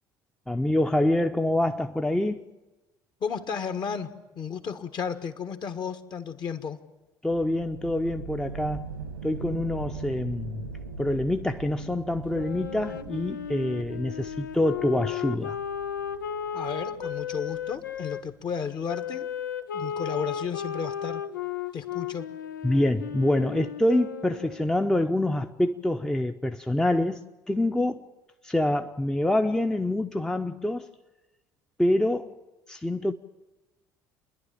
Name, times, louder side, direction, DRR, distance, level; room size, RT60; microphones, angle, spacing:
voice 1, 0.5-2.4 7.2-8.9 9.2-10.7 11.0-15.6 22.6-28.1 28.4-30.9 31.8-32.4 32.7-33.1, left 1 dB, 5° left, 0.7 m, -26 dB
voice 2, 3.2-6.8 16.5-19.3 19.7-21.2 21.7-22.3, left 6 dB, 45° left, 1.5 m, -33 dB
sound 1, 7.3-18.7, right 4 dB, 85° right, 1.5 m, -41 dB
Wind instrument woodwind instrument, 12.3-18.2 18.9-24.7, left 8 dB, 80° left, 0.6 m, -34 dB
29.0 x 11.0 x 8.9 m
figure-of-eight pair, 55°, 11 cm